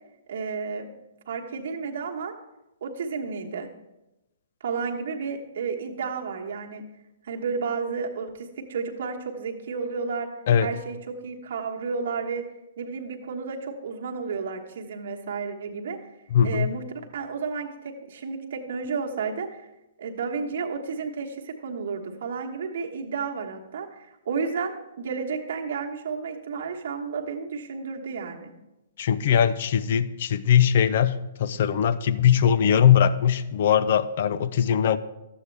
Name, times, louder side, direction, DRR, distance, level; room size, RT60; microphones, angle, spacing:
voice 1, 0.3-0.9 1.3-2.3 2.8-3.7 4.6-6.9 7.2-10.3 10.6-11.0 11.2-12.4 12.8-16.0 16.4-16.8 17.1-19.7 20.0-28.5, right 5 dB, 60° right, 1 dB, 1.2 m, -32 dB
voice 2, 16.3-16.7 29.0-35.0, left 8 dB, 55° left, 13 dB, 0.5 m, -21 dB
12.0 x 8.0 x 3.3 m, 0.96 s
hypercardioid pair, 125°, 0 cm